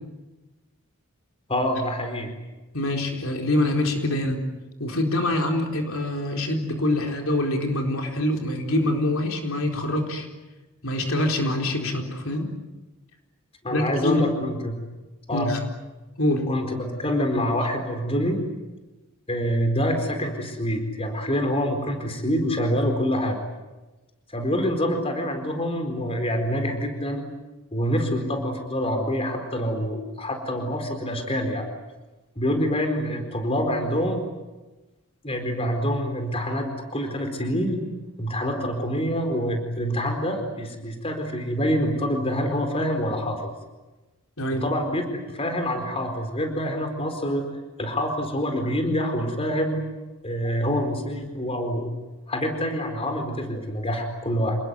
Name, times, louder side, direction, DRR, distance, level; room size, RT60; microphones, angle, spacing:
voice 1, 1.5-2.3 13.6-14.7 15.3-15.5 16.5-18.4 19.3-23.4 24.3-27.2 27.7-31.6 32.4-34.2 35.2-37.8 38.2-43.5 44.5-47.4 47.8-49.8 50.2-51.9 52.3-54.6, equal, 25° left, 5 dB, 4.3 m, -26 dB
voice 2, 2.7-4.4 4.8-10.3 10.8-12.5 13.7-14.2 15.3-15.6 16.2-16.4 44.4-44.6, left 1 dB, 65° left, 3 dB, 4.3 m, -25 dB
28.5 x 20.5 x 9.4 m, 1.1 s
head